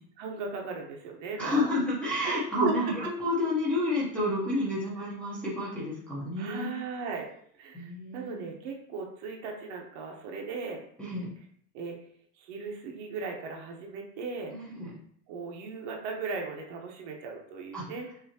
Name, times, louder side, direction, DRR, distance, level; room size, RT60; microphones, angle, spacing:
voice 1, 0.2-1.7 2.2-2.7 6.4-7.3 7.6-10.8 11.7-12.0 12.4-14.5 15.3-18.1, right 4 dB, 50° right, 1 dB, 1.0 m, -37 dB
voice 2, 1.4-6.7 7.7-8.5 11.0-11.3 14.5-14.9 17.7-17.9, left 1 dB, ahead, -10 dB, 0.8 m, -30 dB
5.8 x 2.7 x 2.8 m, 0.63 s
supercardioid pair, 165°, 46 cm